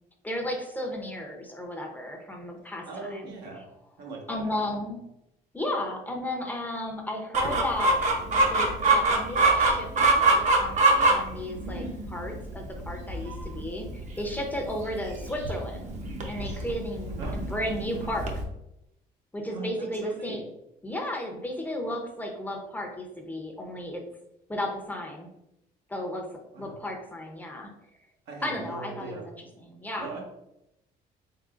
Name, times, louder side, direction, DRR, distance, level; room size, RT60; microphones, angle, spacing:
voice 1, 0.2-3.6 4.3-5.0 5.5-8.0 8.4-15.9 16.3-18.3 19.3-20.4 20.8-24.0 24.5-25.3 25.9-27.7 28.4-30.2, left 1 dB, 10° left, 1 dB, 0.7 m, -34 dB
voice 2, 2.9-3.6 4.0-4.7 17.2-17.4 19.5-20.4 26.5-26.7 28.3-29.2 30.0-30.2, right 3 dB, 80° right, 0 dB, 1.0 m, -39 dB
Chicken rooster, 7.3-18.4, right 2 dB, 45° right, 0.8 m, -25 dB
3.8 x 3.7 x 2.4 m, 0.85 s
cardioid pair, 110°, 17 cm